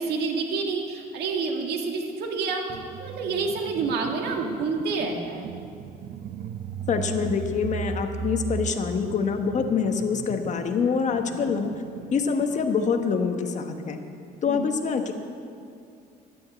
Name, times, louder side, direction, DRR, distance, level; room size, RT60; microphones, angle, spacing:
voice 1, 0.0-2.6 3.0-5.5 11.4-11.6 14.5-14.7, right 4 dB, 75° right, 1 dB, 2.0 m, -28 dB
sound 1, 2.7-13.2, right 7 dB, 50° right, 0.6 m, -37 dB
voice 2, 6.9-11.7 12.1-14.0 14.4-15.1, left 5 dB, 45° left, 5 dB, 1.3 m, -25 dB
11.5 x 9.1 x 8.4 m, 2.4 s
cardioid pair, 110°, 17 cm